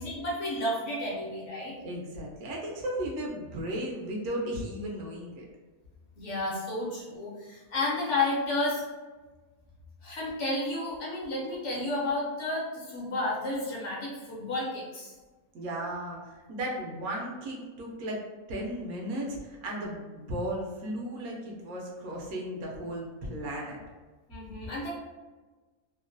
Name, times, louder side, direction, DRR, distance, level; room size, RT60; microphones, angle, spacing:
voice 1, 0.0-1.8 6.2-8.8 10.0-15.1 24.3-24.9, left 2 dB, 60° left, -4 dB, 0.8 m, -31 dB
voice 2, 1.8-5.5 15.5-23.8, right 1 dB, 75° right, -1 dB, 1.1 m, -35 dB
3.0 x 2.1 x 2.5 m, 1.3 s
omnidirectional pair, 1.6 m